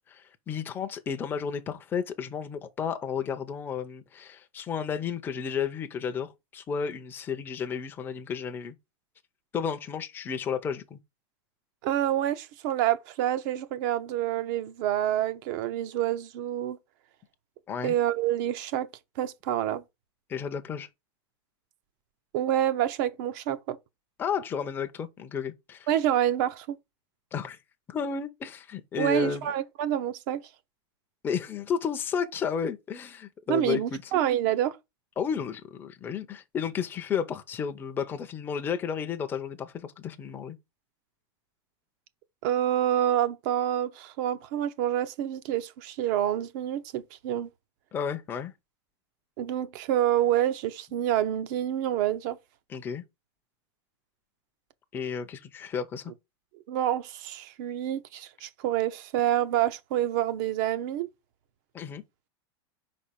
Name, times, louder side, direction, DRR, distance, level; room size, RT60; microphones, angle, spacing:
voice 1, 0.1-8.8 9.5-11.0 17.7-17.9 20.3-20.9 24.2-25.9 27.3-27.6 27.9-29.5 31.2-34.0 35.2-40.6 47.9-48.5 52.7-53.0 54.9-56.1 61.7-62.0, left 7 dB, 15° left, 0.6 m, -32 dB
voice 2, 11.8-16.8 17.8-18.9 19.2-19.8 22.3-23.8 25.9-26.8 29.0-30.4 33.5-34.8 42.4-47.5 49.4-52.4 56.7-61.1, right 12 dB, 45° right, 0.7 m, -27 dB
5.4 x 4.3 x 5.1 m
supercardioid pair, 165°, 14 cm